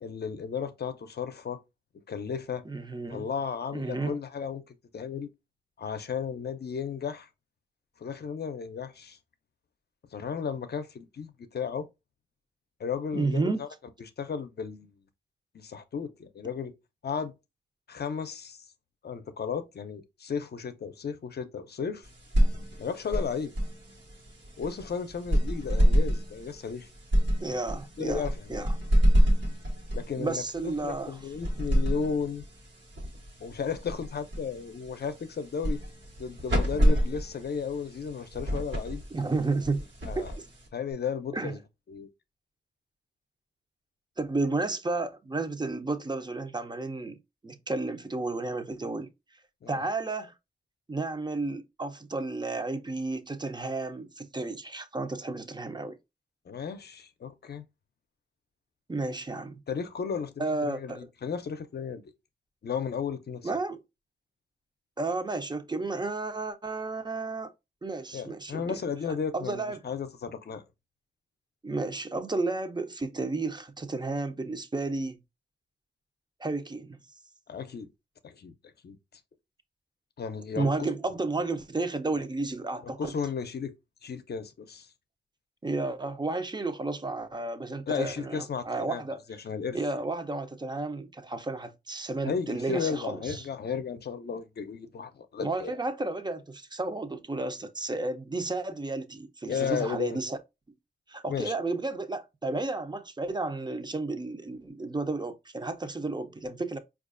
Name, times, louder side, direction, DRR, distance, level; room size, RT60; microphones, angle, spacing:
voice 1, 0.0-1.6 2.1-2.6 3.1-5.3 5.8-7.3 8.0-9.2 10.1-11.9 12.8-13.7 14.0-14.9 15.5-16.7 17.0-17.3 17.9-18.6 19.0-22.1 22.8-23.5 24.6-26.9 28.0-28.7 29.9-32.4 33.4-35.8 36.2-39.0 40.1-40.3 40.7-41.6 41.9-42.1 49.6-49.8 56.5-57.7 59.7-62.0 62.6-63.5 68.1-70.6 77.5-77.9 78.2-78.5 78.8-79.0 80.2-80.9 82.8-83.7 84.0-84.9 87.9-89.0 89.4-89.8 92.2-95.7 99.5-100.2 101.3-101.5, left 6 dB, 60° left, 0.5 m, -34 dB
voice 2, 2.7-3.3 3.7-4.2 13.1-13.6 27.4-28.7 30.2-31.2 39.1-39.8 40.2-40.5 41.3-41.5 44.2-49.1 49.7-50.3 50.9-56.0 58.9-59.6 60.4-61.1 63.4-63.8 65.0-67.5 67.8-68.8 69.3-69.8 71.6-75.2 76.4-77.0 80.6-83.1 85.6-89.2 89.7-93.4 95.4-100.4 101.1-106.8, right 3 dB, 25° right, 0.5 m, -32 dB
sound 1, 22.0-40.9, equal, 80° right, 1.2 m, -28 dB
4.5 x 2.4 x 2.4 m
cardioid pair, 55°, 19 cm